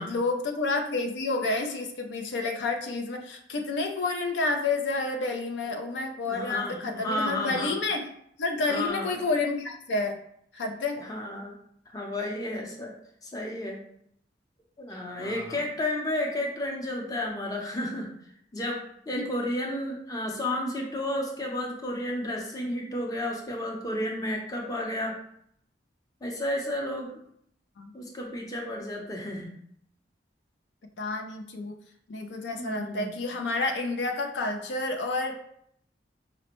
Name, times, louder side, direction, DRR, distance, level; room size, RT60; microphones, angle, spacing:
voice 1, 0.0-8.1 8.4-10.2 10.5-11.0 15.0-15.6 19.1-19.3 27.8-27.9 31.0-31.8 32.1-35.6, left 3 dB, 80° left, 4 dB, 0.4 m, -30 dB
voice 2, 5.8-7.8 8.7-9.1 10.9-11.5 11.9-12.9 13.2-13.8 14.8-18.1 18.5-25.2 26.2-27.2 27.9-29.5 32.5-33.1, left 1 dB, 20° left, 0 dB, 0.6 m, -32 dB
4.9 x 2.1 x 2.9 m, 0.68 s
head